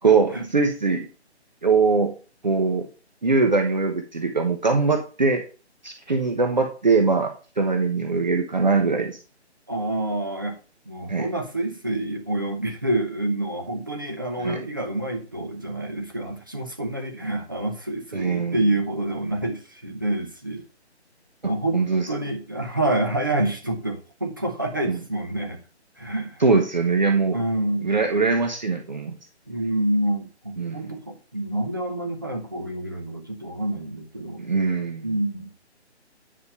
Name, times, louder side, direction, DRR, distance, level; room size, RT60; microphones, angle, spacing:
voice 1, 0.0-1.1 1.6-2.1 2.4-2.9 3.2-5.4 5.8-9.2 11.1-11.3 14.4-14.6 18.1-18.6 21.7-22.1 24.9-25.0 26.4-27.4 27.8-29.2 30.6-30.9 34.4-35.1, right 4 dB, 40° right, 4 dB, 1.1 m, -22 dB
voice 2, 9.7-10.6 10.9-20.6 21.4-21.8 22.1-25.6 26.0-26.4 27.3-27.9 29.5-34.4 35.0-35.5, right 1 dB, 20° right, 2 dB, 0.9 m, -27 dB
10.0 x 5.1 x 5.6 m, 0.36 s
hypercardioid pair, 180°, 34 cm